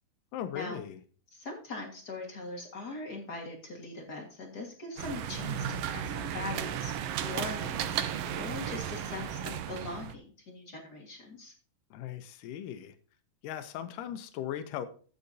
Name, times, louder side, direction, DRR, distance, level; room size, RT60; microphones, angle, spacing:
voice 1, 0.3-1.0 11.9-12.9 13.4-14.9, left 10 dB, 90° left, 9 dB, 2.4 m, -38 dB
voice 2, 1.3-11.5, left 3 dB, 40° left, 2 dB, 1.8 m, -41 dB
sound 1, 5.0-10.2, right 9 dB, 90° right, 1.3 m, -34 dB
15.0 x 6.5 x 2.7 m, 0.41 s
omnidirectional pair, 3.7 m